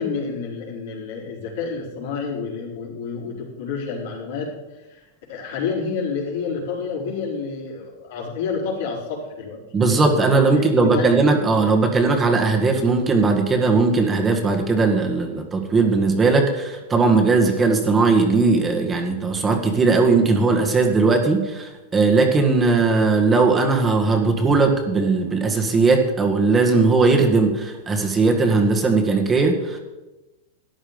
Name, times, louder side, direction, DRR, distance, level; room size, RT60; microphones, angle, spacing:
voice 1, 0.0-9.6 10.5-11.1 11.4-11.5, left 5 dB, 70° left, -2 dB, 4.7 m, -29 dB
voice 2, 9.7-29.8, right 3 dB, 20° right, 3 dB, 1.8 m, -18 dB
13.5 x 9.8 x 5.3 m, 1.1 s
hypercardioid pair, 130°, 0 cm